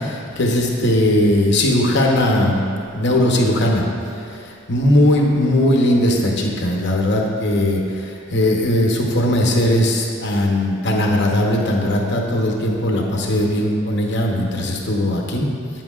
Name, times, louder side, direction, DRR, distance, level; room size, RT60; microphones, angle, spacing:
voice 1, 0.0-2.7 2.9-3.8 4.7-15.5, left 1 dB, 55° left, 0 dB, 0.9 m, -18 dB
8.1 x 7.5 x 2.4 m, 2.6 s
head